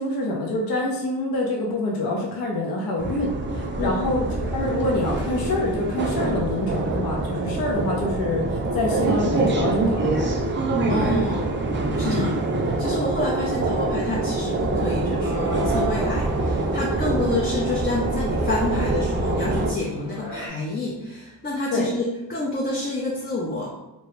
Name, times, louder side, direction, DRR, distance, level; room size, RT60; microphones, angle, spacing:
voice 1, 0.0-10.3 12.0-12.4 21.7-21.9, left 2 dB, 55° left, -1 dB, 0.7 m, -26 dB
sound 1, 3.0-19.7, right 2 dB, 30° right, 0.5 m, -25 dB
sound 2, 4.1-5.8 6.3-7.8 8.1-8.2 8.4-9.8 10.2-11.8, right 4 dB, 75° right, 0.6 m, -40 dB
voice 2, 10.9-11.5 12.0-12.3 12.8-23.7, left 2 dB, 25° left, -5 dB, 0.6 m, -28 dB
sound 3, 15.2-20.5, right 1 dB, 75° left, 1.4 m, -37 dB
3.0 x 2.2 x 3.0 m, 0.98 s
cardioid pair, 70°, 42 cm